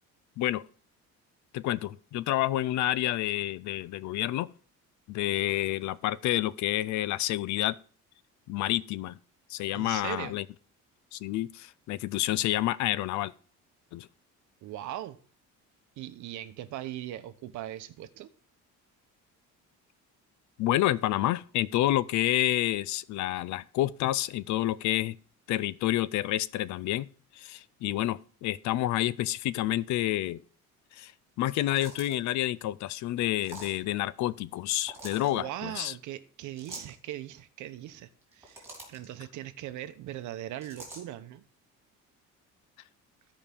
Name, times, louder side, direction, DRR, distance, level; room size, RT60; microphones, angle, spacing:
voice 1, 1.5-4.5 5.1-7.7 8.5-9.2 9.5-10.5 11.1-13.3 13.9-14.1 20.6-25.2 25.5-27.1 27.3-30.4 30.9-31.1 31.4-35.9, left 14 dB, 65° left, 0.5 m, -29 dB
voice 2, 9.7-10.3 14.6-15.2 16.0-18.3 35.3-38.1 38.4-41.4, right 13 dB, 65° right, 0.8 m, -39 dB
sound 1, 31.5-32.3 33.4-33.8 34.8-35.3 36.6-37.0 38.2-39.1 40.6-41.0, right 1 dB, 10° right, 3.1 m, -45 dB
15.0 x 5.1 x 3.5 m
cardioid pair, 170°, 32 cm